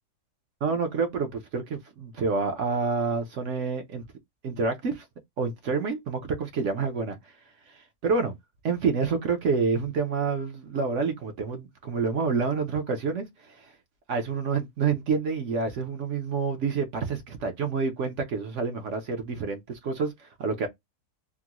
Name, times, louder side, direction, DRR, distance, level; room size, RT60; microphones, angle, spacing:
voice 1, 0.6-4.0 4.4-5.0 5.4-7.2 8.0-8.3 8.6-13.7 14.1-20.7, right 5 dB, 60° right, 0.9 m, -28 dB
3.7 x 2.0 x 2.9 m
omnidirectional pair, 1.7 m